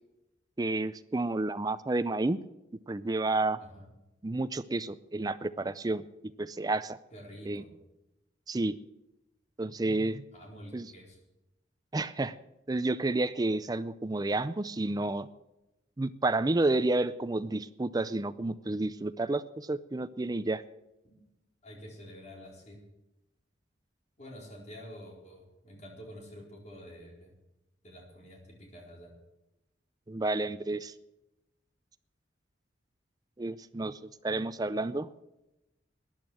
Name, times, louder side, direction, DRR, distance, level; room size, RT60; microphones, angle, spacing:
voice 1, 0.6-2.4 2.9-3.6 4.2-6.0 6.4-7.0 7.5-7.6 8.5-8.8 9.6-10.2 10.7-10.9 11.9-12.4 12.7-15.3 16.0-20.6 30.1-30.9 33.4-34.0 34.2-35.1, right 2 dB, 20° right, 15 dB, 0.4 m, -30 dB
voice 2, 3.6-3.9 7.1-7.7 10.3-11.2 21.0-21.2 21.6-22.8 24.2-27.3 27.8-29.1, equal, 35° left, 0 dB, 4.2 m, -48 dB
13.5 x 10.5 x 7.7 m, 0.94 s
head